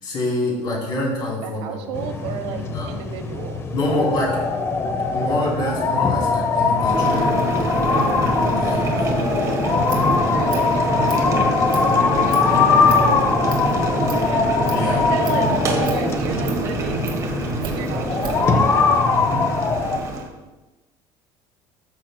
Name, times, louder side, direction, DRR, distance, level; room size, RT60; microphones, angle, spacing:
voice 1, 0.0-2.9 3.7-4.4 5.1-7.3 8.5-8.9 14.7-15.0 19.1-19.5, left 1 dB, 45° left, -2 dB, 2.7 m, -26 dB
voice 2, 1.4-3.6 7.9-8.2 10.3-11.5 12.1-13.3 13.6-14.5 14.9-15.5 15.8-17.0 17.6-18.7, right 7 dB, 75° right, 6 dB, 1.0 m, -33 dB
sound 1, 1.9-20.0, left 4 dB, 25° left, 0.6 m, -21 dB
Boiling, 6.8-20.3, right 2 dB, 30° right, 1.2 m, -25 dB
Scissors, 9.6-18.5, right 6 dB, 45° right, 2.2 m, -40 dB
13.0 x 6.5 x 2.2 m, 1.1 s
cardioid pair, 155°, 11 cm